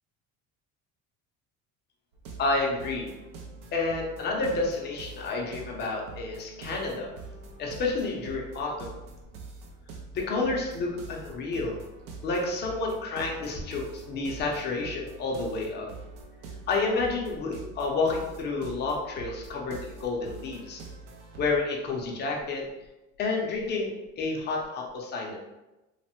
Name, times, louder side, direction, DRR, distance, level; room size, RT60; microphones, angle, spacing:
sound 1, 2.1-21.6, right 3 dB, 70° right, 0.5 m, -45 dB
voice 1, 2.4-3.1 3.7-7.1 7.6-8.9 10.1-11.8 12.2-15.9 16.7-20.8 21.4-22.6 23.2-25.4, left 3 dB, 30° left, -1 dB, 0.5 m, -30 dB
3.1 x 2.0 x 2.9 m, 1.0 s
cardioid pair, 170°, 33 cm